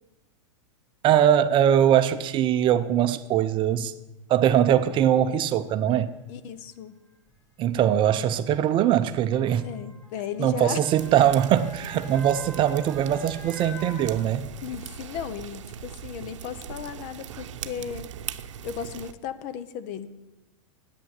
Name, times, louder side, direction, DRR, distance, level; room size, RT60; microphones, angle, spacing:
voice 1, 1.0-3.9 4.3-6.1 7.6-9.7 10.4-14.5, right 10 dB, 30° right, 12 dB, 0.6 m, -21 dB
Motor vehicle (road) / Siren, 6.1-6.2 7.3-14.9 15.3-15.4, equal, 15° left, 3.3 m, -46 dB
voice 2, 6.3-6.9 9.6-10.9 14.6-18.1 18.6-20.1, left 8 dB, 50° left, 13 dB, 0.9 m, -35 dB
sound 1, 11.0-19.1, right 9 dB, 85° right, 0.7 m, -40 dB
10.0 x 8.8 x 8.1 m, 1.0 s
supercardioid pair, 130°, 16 cm